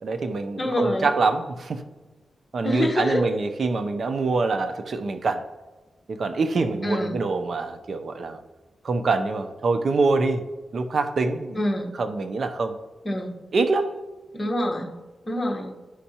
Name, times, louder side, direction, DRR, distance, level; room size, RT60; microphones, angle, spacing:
voice 1, 0.0-1.8 2.5-5.5 6.1-8.4 8.8-10.4 10.7-11.6 11.9-12.8 13.5-14.0, right 3 dB, 55° right, 0.6 m, -25 dB
voice 2, 0.6-1.1 2.6-3.3 6.8-7.2 11.5-11.9 13.0-13.4 14.3-14.9 15.3-15.7, left 1 dB, 25° left, 1.2 m, -26 dB
11.5 x 5.4 x 2.8 m
wide cardioid pair, 100°, 0 cm